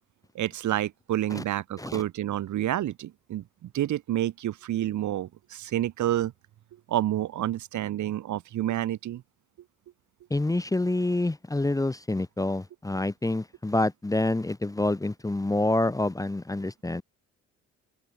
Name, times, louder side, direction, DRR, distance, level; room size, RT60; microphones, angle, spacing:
voice 1, 0.3-6.3 6.9-9.2, right 13 dB, 70° right, 1.7 m, -29 dB
voice 2, 10.3-17.0, left 2 dB, 10° left, 1.0 m, -27 dB
open air
cardioid pair, 90°, 30 cm